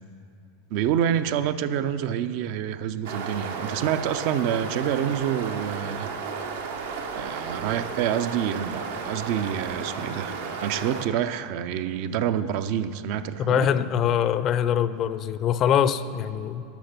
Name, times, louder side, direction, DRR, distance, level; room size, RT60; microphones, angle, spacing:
voice 1, 0.7-6.1 7.1-13.7, right 9 dB, 60° right, 11 dB, 0.5 m, -27 dB
sound 1, 3.0-11.1, right 5 dB, 80° right, 1.0 m, -33 dB
voice 2, 13.4-16.6, left 9 dB, 45° left, 14 dB, 0.5 m, -23 dB
12.0 x 5.9 x 5.9 m, 2.8 s
hypercardioid pair, 95°, 0 cm